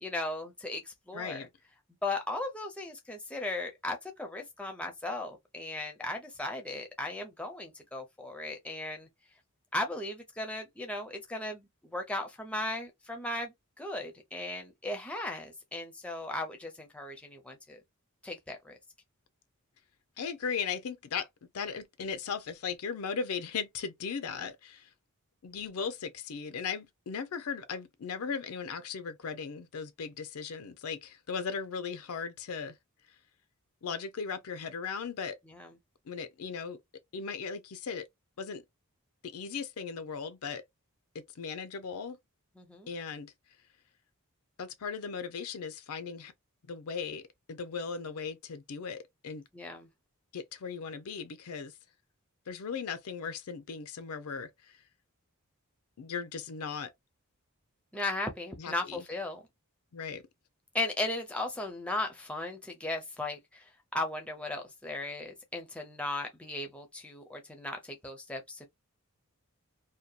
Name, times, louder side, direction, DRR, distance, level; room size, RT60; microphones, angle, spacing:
voice 1, 0.0-1.4 2.0-9.1 9.7-17.8 18.2-18.8 35.5-35.7 42.6-42.9 49.5-49.9 57.9-59.4 60.7-63.6 63.9-68.7, left 2 dB, 5° left, 0.5 m, -37 dB
voice 2, 1.1-1.5 20.2-21.3 21.5-24.9 25.4-32.8 33.8-35.4 36.1-36.8 37.1-38.1 38.4-38.6 39.2-40.6 41.1-42.2 42.9-43.3 44.6-46.3 46.7-49.4 50.3-51.7 52.5-54.8 56.0-56.9 58.6-59.0 59.9-60.2, left 6 dB, 75° left, 0.5 m, -37 dB
2.7 x 2.2 x 2.3 m
head